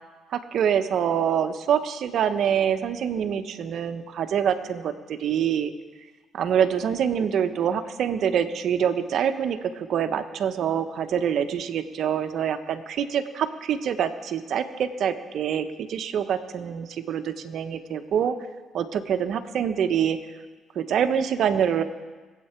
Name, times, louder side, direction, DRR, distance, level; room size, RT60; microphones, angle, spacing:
voice 1, 0.3-5.7 6.3-18.3 18.7-20.2 20.7-21.8, right 8 dB, 70° right, 9 dB, 1.0 m, -25 dB
22.0 x 8.4 x 4.5 m, 1.3 s
cardioid pair, 75°, 0 cm